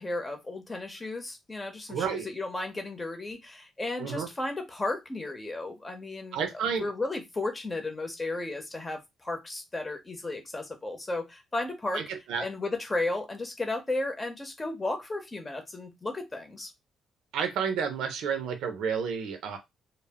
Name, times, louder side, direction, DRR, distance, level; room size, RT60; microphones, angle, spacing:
voice 1, 0.0-6.4 6.8-12.0 12.4-16.7, left 2 dB, 20° left, 0.8 m, -34 dB
voice 2, 1.9-2.3 4.0-4.3 6.3-6.9 11.9-12.5 17.3-19.6, right 6 dB, 85° right, 0.5 m, -31 dB
2.1 x 2.0 x 3.5 m
cardioid pair, 90°, 0 cm